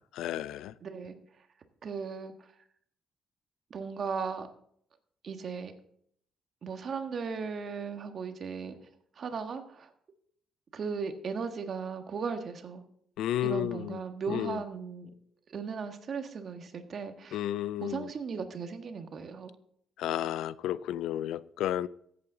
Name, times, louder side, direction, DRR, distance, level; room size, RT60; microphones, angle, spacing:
voice 1, 0.2-0.7 13.2-14.0 14.3-14.6 17.3-18.1 20.0-21.9, left 12 dB, 85° left, 0.4 m, -32 dB
voice 2, 0.8-1.2 1.8-2.3 3.7-4.5 5.2-5.7 6.6-8.8 9.2-9.9 10.7-12.8 13.4-15.1 15.5-17.4 17.8-19.5, right 5 dB, 50° right, 1.5 m, -37 dB
14.0 x 8.5 x 3.9 m
cardioid pair, 90°, 0 cm